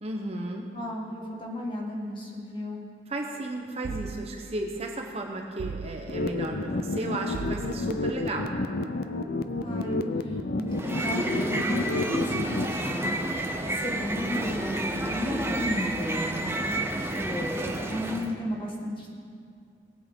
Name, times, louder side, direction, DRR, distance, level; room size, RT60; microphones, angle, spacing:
voice 1, 0.0-0.7 3.1-8.6, right 2 dB, 35° right, 2 dB, 0.9 m, -34 dB
voice 2, 0.7-2.8 9.6-13.2 13.7-16.4 17.0-19.1, equal, 25° left, -2 dB, 1.8 m, -34 dB
sound 1, 3.8-4.6 5.6-6.3 7.3-8.1, right 6 dB, 85° right, 0.4 m, -38 dB
rhodes chord fades, 6.1-12.7, left 2 dB, 55° left, 0.5 m, -30 dB
sound 2, 10.7-18.3, right 1 dB, 15° right, 0.7 m, -30 dB
19.5 x 8.1 x 3.7 m, 2.3 s
head